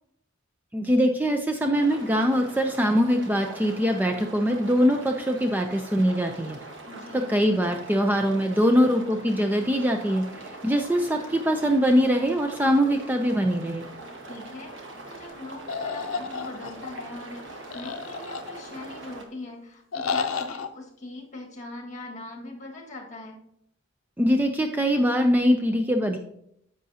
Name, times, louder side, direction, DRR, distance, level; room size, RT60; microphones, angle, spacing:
voice 1, 0.7-6.6 7.1-13.9 24.2-26.2, equal, 10° right, 4 dB, 0.4 m, -23 dB
sound 1, 1.7-19.2, right 2 dB, 65° right, 1.3 m, -42 dB
voice 2, 6.8-7.3 10.6-10.9 14.3-23.4, left 2 dB, 40° left, 0 dB, 1.7 m, -41 dB
sound 2, 15.7-17.0 17.7-18.9 19.9-20.7, left 5 dB, 85° left, 0.6 m, -31 dB
10.0 x 7.4 x 2.8 m, 0.73 s
head